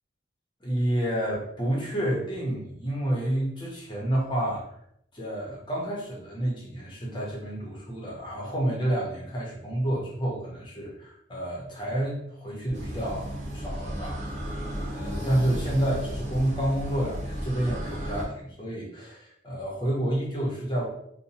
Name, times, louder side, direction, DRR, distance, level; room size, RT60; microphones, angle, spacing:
voice 1, 0.6-4.6 5.1-14.2 14.9-20.8, right 1 dB, 25° left, -4 dB, 0.9 m, -29 dB
sound 1, 12.7-18.2, equal, 40° right, 0.7 m, -34 dB
2.8 x 2.3 x 2.8 m, 0.71 s
head